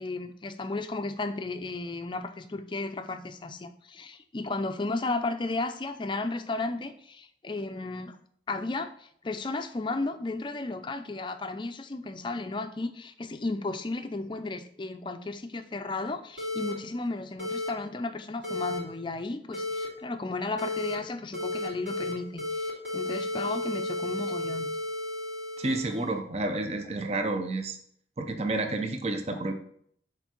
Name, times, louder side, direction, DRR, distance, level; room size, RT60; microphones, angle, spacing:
voice 1, 0.0-8.2 8.5-24.7, left 3 dB, 25° left, 9 dB, 0.4 m, -34 dB
sound 1, 16.4-16.7 17.4-17.7 18.4-18.8 19.5-19.9 20.6-21.0 21.3-22.1 22.4-26.1, left 2 dB, 75° right, 3.1 m, -33 dB
voice 2, 25.6-27.8 28.2-29.5, right 2 dB, 35° right, 6 dB, 0.7 m, -30 dB
7.0 x 4.5 x 4.4 m, 0.65 s
head